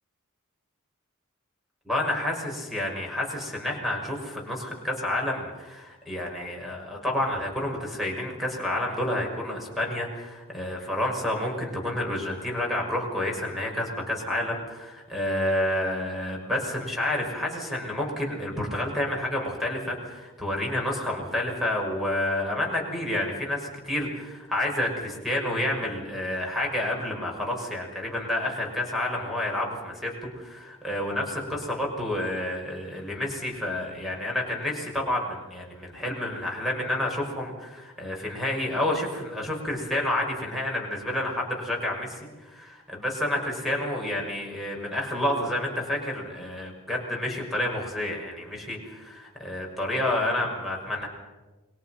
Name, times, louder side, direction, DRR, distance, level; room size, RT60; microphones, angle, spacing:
voice 1, 1.8-51.1, left 1 dB, ahead, 0 dB, 5.8 m, -29 dB
28.5 x 22.5 x 5.8 m, 1.2 s
head